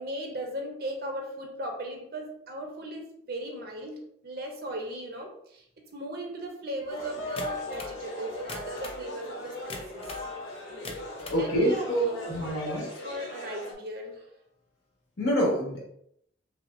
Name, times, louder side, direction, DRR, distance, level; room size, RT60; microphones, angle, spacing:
voice 1, 0.0-10.1 11.4-12.3 12.6-14.3, right 1 dB, 50° right, 2 dB, 0.7 m, -37 dB
sound 1, 6.8-12.1, left 3 dB, 10° left, 0.8 m, -42 dB
sound 2, 6.9-13.7, left 1 dB, 80° left, 1.0 m, -41 dB
sound 3, 7.4-8.0 8.4-9.0 9.7-10.3 10.7-11.4, left 2 dB, 30° left, 0.5 m, -41 dB
voice 2, 11.3-12.9 15.2-15.8, equal, 65° left, -3 dB, 1.5 m, -26 dB
5.9 x 2.0 x 2.5 m, 0.72 s
head